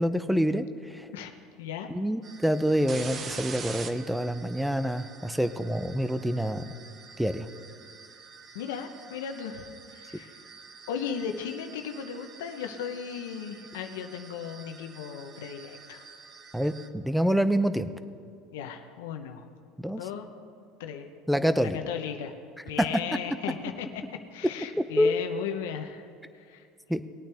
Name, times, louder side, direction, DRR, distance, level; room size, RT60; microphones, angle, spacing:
voice 1, 0.0-1.1 1.9-6.6 7.2-7.5 16.5-17.9 19.8-20.0 21.3-21.8 25.0-25.2 26.9-27.0, equal, ahead, 12 dB, 0.6 m, -26 dB
voice 2, 1.6-1.9 8.5-10.4 10.9-16.0 18.5-19.4 19.9-20.3 20.8-21.1 21.6-22.3 22.6-26.1 26.3-26.7, left 8 dB, 85° left, 6 dB, 0.9 m, -36 dB
sound 1, 2.2-16.9, right 5 dB, 35° right, 0.9 m, -46 dB
19.5 x 8.9 x 3.4 m, 2.3 s
supercardioid pair, 110°, 0 cm